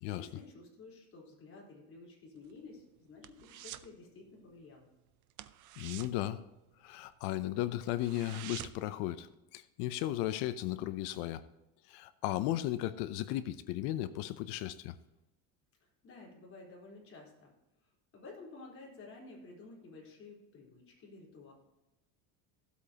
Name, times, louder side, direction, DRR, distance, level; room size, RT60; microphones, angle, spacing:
voice 1, 0.1-4.9 15.8-17.5 17.8-21.5, left 3 dB, 30° left, -2 dB, 4.1 m, -52 dB
sound 1, 2.4-4.0 4.2-4.5 4.8-4.9 5.3-7.2 7.5-7.6 7.9-9.0 9.3-9.4, right 14 dB, 45° right, 0.6 m, -48 dB
voice 2, 5.8-6.4 6.8-9.3 9.5-11.4 11.9-14.9, left 14 dB, 70° left, 13 dB, 0.7 m, -35 dB
15.5 x 8.3 x 2.9 m, 1.0 s
cardioid pair, 135°, 41 cm